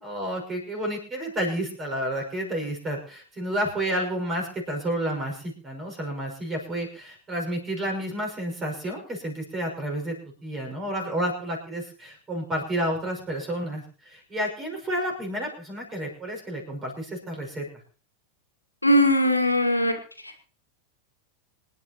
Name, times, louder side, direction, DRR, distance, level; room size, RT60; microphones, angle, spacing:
voice 1, 0.0-10.2 10.4-17.7, right 1 dB, 20° right, 2 dB, 6.0 m, -30 dB
voice 2, 18.8-20.0, equal, 85° left, 4 dB, 2.0 m, -20 dB
26.5 x 10.0 x 3.0 m, 0.40 s
figure-of-eight pair, 90°, 0 cm